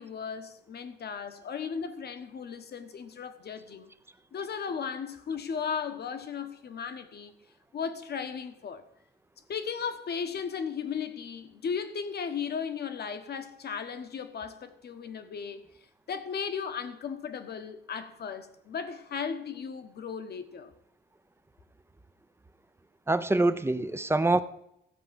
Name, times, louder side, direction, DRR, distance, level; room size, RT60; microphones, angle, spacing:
voice 1, 0.0-3.9 4.3-7.4 7.7-8.8 9.5-15.6 16.1-20.7, left 6 dB, 55° left, 1.3 m, -36 dB
voice 2, 23.1-24.4, right 2 dB, 10° right, 0.8 m, -25 dB
14.0 x 4.8 x 8.1 m
cardioid pair, 90°, 20 cm